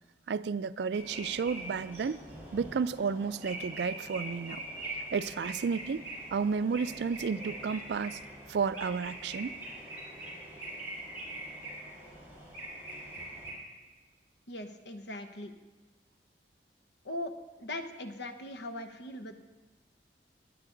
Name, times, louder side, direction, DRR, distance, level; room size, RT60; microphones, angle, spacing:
voice 1, 0.3-2.2 2.5-4.6 5.1-6.0 6.3-8.2 8.5-9.5, right 5 dB, 75° right, 16 dB, 0.4 m, -32 dB
sound 1, 0.9-13.5, right 1 dB, 10° right, 4.2 m, -43 dB
voice 2, 14.5-15.5 17.0-17.3 17.6-19.4, left 1 dB, 75° left, 7 dB, 1.0 m, -40 dB
20.0 x 8.4 x 3.9 m, 1.3 s
head